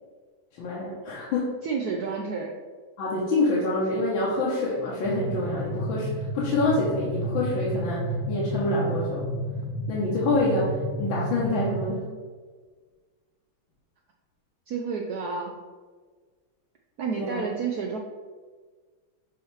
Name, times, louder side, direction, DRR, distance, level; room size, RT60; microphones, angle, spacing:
voice 1, 0.6-1.5 3.0-9.2 9.9-12.1 17.2-17.5, left 2 dB, 70° left, -6 dB, 1.8 m, -26 dB
voice 2, 1.6-2.5 14.7-15.5 17.0-18.0, right 5 dB, 90° right, 1 dB, 0.8 m, -30 dB
sound 1, 5.0-11.9, equal, 85° left, 2.2 m, -31 dB
7.0 x 3.1 x 4.6 m, 1.5 s
omnidirectional pair, 2.3 m